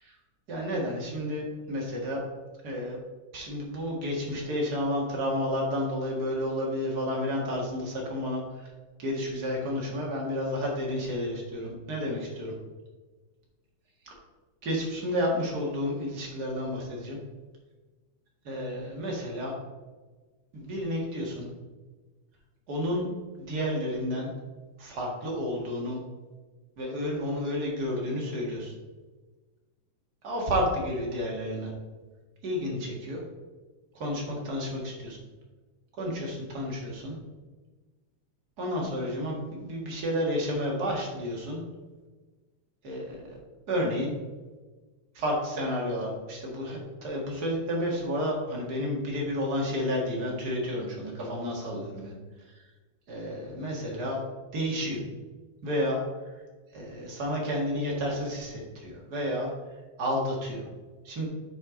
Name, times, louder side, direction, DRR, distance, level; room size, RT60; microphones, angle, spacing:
voice 1, 0.5-2.2 2.6-3.0 3.3-8.7 9.0-12.5 14.0-14.1 14.6-17.2 18.5-19.5 20.5-21.5 22.7-23.0 23.4-24.3 24.8-26.0 26.8-28.7 30.2-31.7 32.4-33.2 33.9-35.2 36.0-37.2 38.6-41.6 42.8-43.4 43.7-44.1 45.1-52.1 52.5-52.6 53.1-54.2 54.5-55.0 55.6-56.0 56.7-59.5 60.0-60.6 61.0-61.3, equal, 35° right, -2 dB, 1.9 m, -31 dB
9.0 x 5.6 x 3.8 m, 1.3 s
omnidirectional pair, 3.5 m